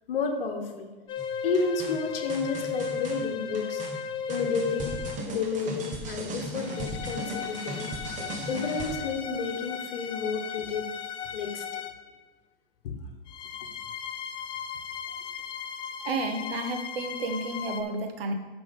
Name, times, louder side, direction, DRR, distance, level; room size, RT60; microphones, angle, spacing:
voice 1, 0.1-0.9 1.4-3.8 4.3-5.0 5.3-7.9 8.5-10.9 11.3-11.8 12.8-13.0, left 4 dB, 70° left, 5 dB, 1.4 m, -31 dB
sound 1, 1.1-5.4 6.6-12.1 13.3-17.8, left 7 dB, 15° left, 0.4 m, -36 dB
sound 2, 1.2-9.0, right 1 dB, 25° right, 1.3 m, -37 dB
voice 2, 16.0-18.3, right 2 dB, 75° right, 5 dB, 1.3 m, -31 dB
6.1 x 6.0 x 5.3 m, 1.3 s
hypercardioid pair, 125°, 29 cm